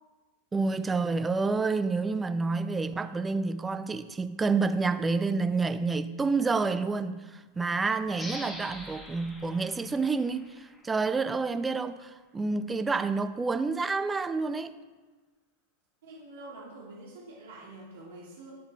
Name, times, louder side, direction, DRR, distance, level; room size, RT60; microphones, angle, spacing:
voice 1, 0.5-14.8, right 4 dB, 15° right, 0.3 m, -29 dB
sound 1, 8.1-11.4, left 1 dB, 15° left, 1.0 m, -44 dB
voice 2, 16.0-18.5, right 2 dB, 60° right, 1.1 m, -46 dB
8.7 x 3.8 x 4.0 m
figure-of-eight pair, 90°, 0 cm